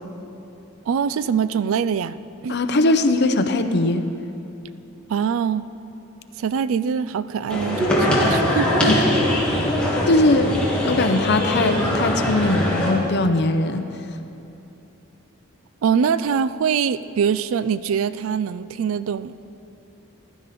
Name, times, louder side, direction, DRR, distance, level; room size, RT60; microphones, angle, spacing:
voice 1, 0.9-2.2 2.4-2.6 5.1-5.7 6.4-9.0 15.8-19.5, right 7 dB, 70° right, 15 dB, 0.3 m, -23 dB
voice 2, 2.5-4.1 8.8-9.0 10.1-10.5 10.9-13.8, left 2 dB, 50° left, 8 dB, 0.7 m, -20 dB
sound 1, 7.5-12.9, left 1 dB, 5° left, 2.1 m, -21 dB
15.0 x 12.0 x 4.2 m, 2.9 s
head